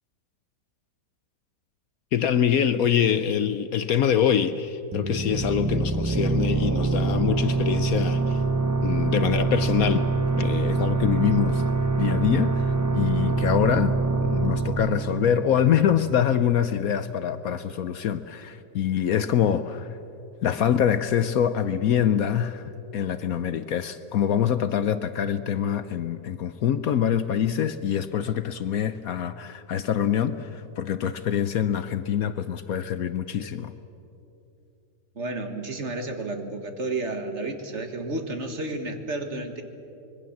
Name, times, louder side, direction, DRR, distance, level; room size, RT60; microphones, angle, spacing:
voice 1, 2.1-8.4 8.8-10.0 10.4-11.6 12.0-20.0 20.4-33.7, left 9 dB, 65° left, 12 dB, 1.0 m, -25 dB
sound 1, 4.9-16.3, right 3 dB, 20° right, 0.5 m, -25 dB
voice 2, 35.2-39.6, right 2 dB, 40° right, 6 dB, 1.8 m, -31 dB
25.5 x 21.5 x 7.3 m, 2.9 s
omnidirectional pair, 1.8 m